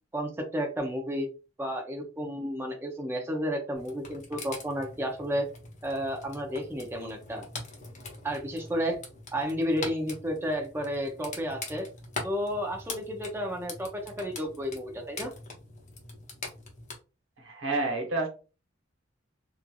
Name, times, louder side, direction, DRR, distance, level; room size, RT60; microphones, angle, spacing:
voice 1, 0.1-1.3 1.6-5.5 5.8-7.4 8.2-9.0 9.3-11.9 12.2-15.3, equal, 10° right, 2 dB, 0.5 m, -32 dB
sound 1, 3.7-17.0, left 3 dB, 40° left, 0.7 m, -43 dB
voice 2, 17.4-18.3, right 2 dB, 80° right, 2 dB, 1.0 m, -29 dB
3.0 x 2.4 x 2.2 m, 0.32 s
head